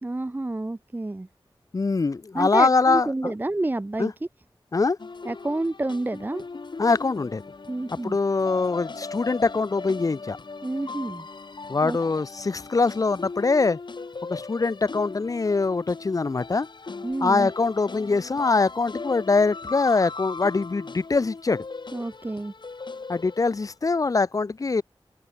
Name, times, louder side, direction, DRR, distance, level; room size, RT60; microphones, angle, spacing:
voice 1, 0.0-1.3 2.3-4.1 5.3-6.4 7.7-8.2 10.6-11.3 11.8-12.0 17.0-17.5 21.9-22.5, right 2 dB, 20° right, 0.5 m, -29 dB
voice 2, 1.7-3.3 4.0-4.1 4.7-5.0 6.8-7.4 8.0-10.4 11.7-13.8 14.3-16.7 17.2-21.6 23.1-24.8, left 4 dB, 40° left, 0.5 m, -23 dB
sound 1, 5.0-23.7, left 4 dB, 55° left, 1.5 m, -39 dB
open air
wide cardioid pair, 90°, 9 cm